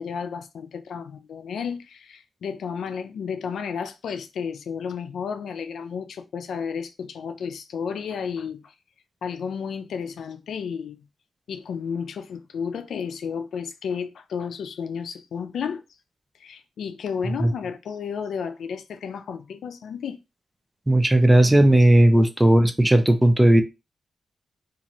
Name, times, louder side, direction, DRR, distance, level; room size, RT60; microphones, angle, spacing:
voice 1, 0.0-8.7 9.2-11.1 11.5-15.8 16.4-20.2, left 6 dB, 90° left, 0.4 m, -32 dB
voice 2, 20.9-23.6, right 1 dB, 10° right, 0.4 m, -16 dB
2.7 x 2.5 x 2.9 m
wide cardioid pair, 115°, 0 cm